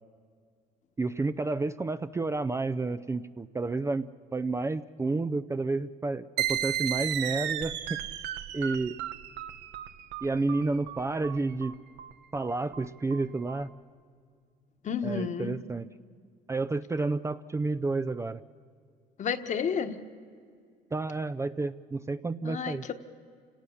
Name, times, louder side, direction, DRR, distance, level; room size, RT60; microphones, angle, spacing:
voice 1, 1.0-8.0 8.5-8.9 10.2-11.8 12.3-13.7 15.0-15.9 16.5-18.4 20.9-22.8, right 3 dB, 15° right, 12 dB, 0.5 m, -30 dB
sound 1, 6.4-13.6, right 11 dB, 85° right, 1.0 m, -34 dB
voice 2, 14.8-15.5 19.2-20.0 22.4-22.9, left 6 dB, 45° left, 8 dB, 1.3 m, -31 dB
29.5 x 17.5 x 7.1 m, 2.2 s
cardioid pair, 110°, 17 cm